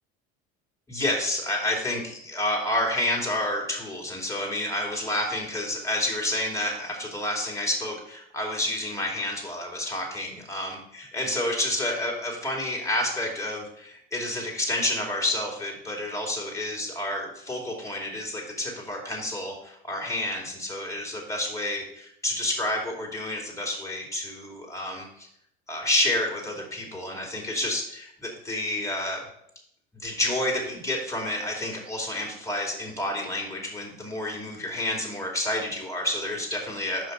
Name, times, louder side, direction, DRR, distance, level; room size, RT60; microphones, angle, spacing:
voice 1, 0.9-25.1 25.7-29.2 29.9-37.1, left 1 dB, 10° left, -2 dB, 2.4 m, -29 dB
5.9 x 5.1 x 5.4 m, 0.72 s
supercardioid pair, 90°, 29 cm